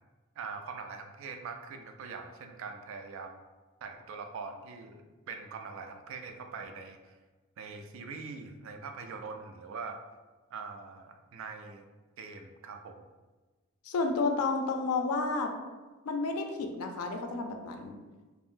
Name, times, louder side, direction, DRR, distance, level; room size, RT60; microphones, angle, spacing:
voice 1, 0.4-3.4 3.8-7.1 7.6-10.0 10.5-11.8 12.2-13.0, right 5 dB, 65° right, 6 dB, 0.3 m, -43 dB
voice 2, 13.8-15.5 16.1-18.0, left 3 dB, 90° left, 5 dB, 0.4 m, -31 dB
2.5 x 2.0 x 3.6 m, 1.2 s
head